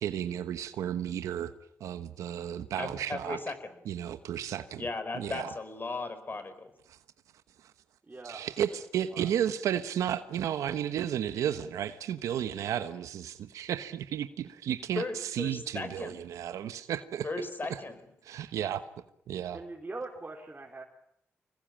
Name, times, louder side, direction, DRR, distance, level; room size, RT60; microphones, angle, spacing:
voice 1, 0.0-1.5 1.8-3.4 3.9-4.8 5.1-5.5 6.9-7.0 8.2-17.3 18.2-18.9 19.3-19.6, right 10 dB, 85° right, 11 dB, 1.1 m, -33 dB
voice 2, 2.8-3.8 4.8-6.7 14.9-16.2 17.2-18.1, left 3 dB, 40° left, 11 dB, 5.2 m, -37 dB
voice 3, 8.1-8.4 9.1-9.3 19.5-20.8, right 3 dB, 30° right, -1 dB, 4.3 m, -42 dB
25.5 x 21.0 x 8.8 m, 0.71 s
supercardioid pair, 55°, 5 cm